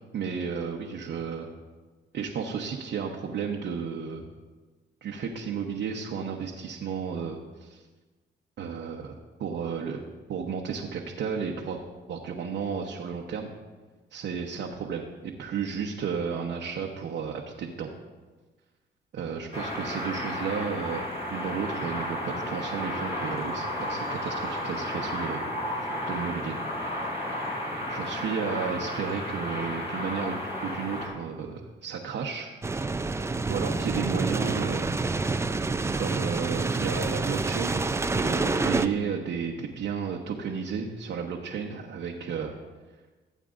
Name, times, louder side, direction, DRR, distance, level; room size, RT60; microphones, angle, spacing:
voice 1, 0.1-1.5 2.1-4.3 5.0-7.8 8.6-9.1 9.4-10.0 10.3-11.8 12.1-13.5 14.1-17.9 19.1-21.1 21.3-25.4 26.1-26.6 27.9-32.5 33.0-34.9 36.0-42.6, right 6 dB, 65° right, 0 dB, 0.9 m, -33 dB
sound 1, 19.5-31.1, left 1 dB, 30° left, 3.1 m, -33 dB
sound 2, 32.6-38.9, right 3 dB, 15° right, 0.4 m, -28 dB
16.0 x 8.3 x 2.5 m, 1.3 s
cardioid pair, 90°, 20 cm